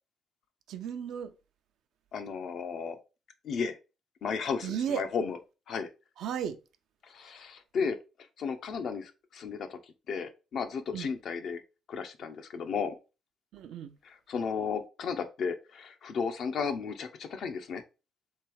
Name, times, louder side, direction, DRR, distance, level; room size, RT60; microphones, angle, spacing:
voice 1, 0.7-1.3 4.6-5.0 6.2-6.6 10.9-11.1 13.5-13.9, right 9 dB, 80° right, 0.5 m, -34 dB
voice 2, 2.1-3.0 3.4-3.8 4.2-5.4 5.7-5.9 7.0-8.0 8.4-9.8 10.1-11.6 11.9-12.9 14.0-17.8, left 5 dB, 65° left, 0.7 m, -34 dB
3.4 x 3.3 x 4.6 m
cardioid pair, 90°, 0 cm